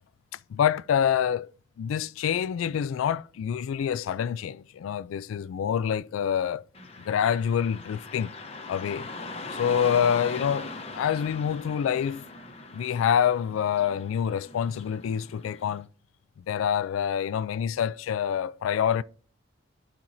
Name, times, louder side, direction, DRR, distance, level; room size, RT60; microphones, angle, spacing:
voice 1, 0.5-1.5 1.8-6.6 7.1-8.3 8.7-9.1 9.5-12.2 12.7-15.9 16.5-19.0, left 8 dB, 85° left, 0.3 m, -26 dB
Car passing by / Traffic noise roadway noise, 6.7-15.8, left 3 dB, 30° left, 0.9 m, -40 dB
12.0 x 4.5 x 2.6 m
head